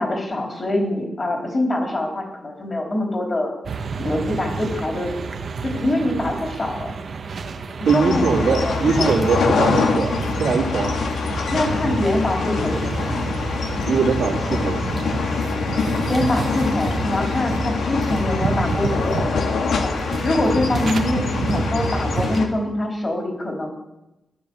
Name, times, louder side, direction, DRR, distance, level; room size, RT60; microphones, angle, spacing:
voice 1, 0.0-3.5 4.0-5.1 5.6-6.9 7.9-9.1 11.5-13.3 16.1-19.9 20.2-23.7, left 1 dB, 30° left, 1 dB, 4.1 m, -24 dB
sound 1, 3.6-22.4, right 4 dB, 50° right, 1.3 m, -29 dB
sound 2, 7.8-22.5, left 5 dB, 90° left, 2.0 m, -24 dB
voice 2, 7.8-11.1 13.9-14.9, right 5 dB, 80° right, -2 dB, 2.7 m, -21 dB
15.5 x 11.0 x 7.1 m, 0.96 s
wide cardioid pair, 160°, 0 cm